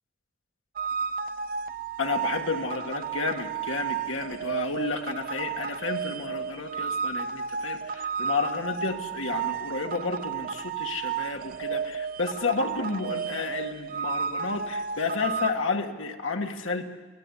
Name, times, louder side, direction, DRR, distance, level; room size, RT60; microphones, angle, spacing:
sound 1, 0.8-15.5, right 6 dB, 50° right, 0.8 m, -32 dB
voice 1, 2.0-16.9, left 4 dB, 80° left, 3 dB, 1.7 m, -31 dB
26.0 x 17.0 x 9.9 m, 1.3 s
head